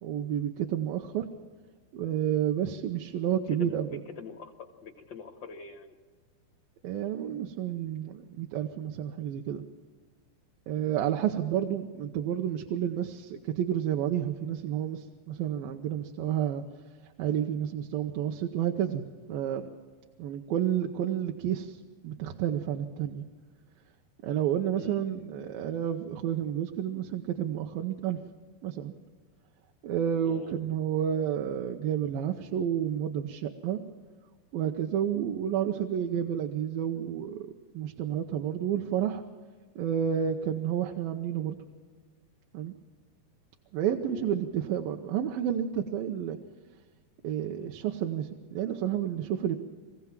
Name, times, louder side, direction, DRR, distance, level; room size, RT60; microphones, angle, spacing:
voice 1, 0.0-1.3 1.9-3.9 6.8-9.6 10.7-16.6 17.2-19.0 19.3-19.7 20.2-21.8 22.0-23.2 24.2-28.2 28.6-28.9 29.8-33.8 34.5-37.5 37.7-39.2 39.8-41.6 42.5-42.7 43.7-46.4 47.2-49.6, right 9 dB, 75° right, 3 dB, 2.5 m, -30 dB
voice 2, 3.2-5.9 24.8-25.0 30.2-30.5 44.1-44.3, left 6 dB, 85° left, 4 dB, 1.0 m, -44 dB
24.5 x 16.0 x 7.4 m, 1.5 s
omnidirectional pair, 4.4 m